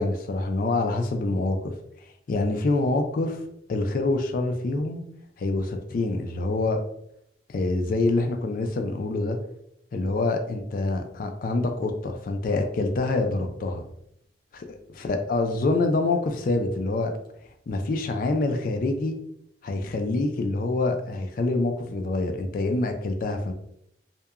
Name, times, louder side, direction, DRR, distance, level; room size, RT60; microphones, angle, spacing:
voice 1, 0.0-1.8 2.3-3.4 3.7-5.0 5.4-6.8 7.5-9.4 9.9-13.8 14.5-17.1 17.7-19.2 19.6-23.5, left 2 dB, 50° left, 5 dB, 0.3 m, -26 dB
2.8 x 2.2 x 2.3 m, 0.73 s
head